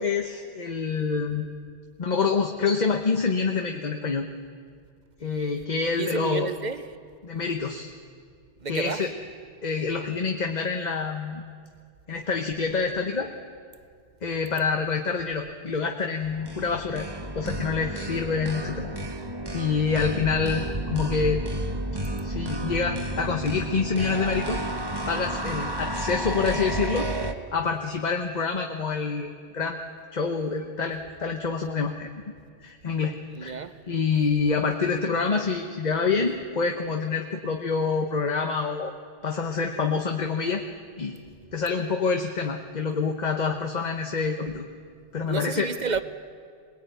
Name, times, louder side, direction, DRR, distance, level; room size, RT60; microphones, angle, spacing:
voice 1, 0.0-1.4 2.0-4.3 5.2-6.5 7.2-7.9 8.7-9.1 9.6-11.4 12.1-13.3 14.2-17.1 17.3-18.9 19.5-21.4 22.2-24.6 25.1-27.1 27.5-29.8 30.1-32.1 32.6-33.6 33.9-38.9 39.2-40.6 41.0-41.2 41.5-44.6 45.1-45.7, left 5 dB, 40° left, 4 dB, 1.1 m, -27 dB
voice 2, 6.0-6.8 8.6-9.0 33.3-33.7 45.3-46.0, right 5 dB, 45° right, 11 dB, 0.9 m, -30 dB
sound 1, 16.2-27.3, right 1 dB, 25° right, 1.1 m, -31 dB
22.5 x 20.0 x 9.2 m, 2.2 s
omnidirectional pair, 1.1 m